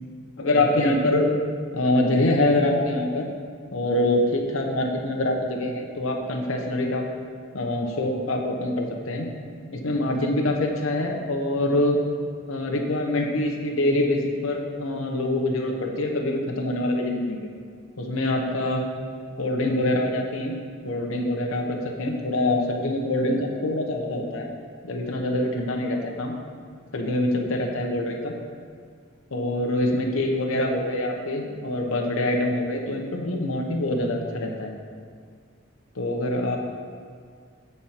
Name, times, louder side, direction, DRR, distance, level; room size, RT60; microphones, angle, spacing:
voice 1, 0.4-1.3 1.7-3.3 3.7-7.0 7.5-9.3 9.7-12.0 12.5-17.5 18.0-18.8 19.4-20.6 20.8-24.5 24.8-26.3 26.9-28.3 29.3-34.7 36.0-36.6, left 1 dB, 80° left, 1 dB, 1.0 m, -25 dB
8.3 x 4.4 x 5.8 m, 2.1 s
head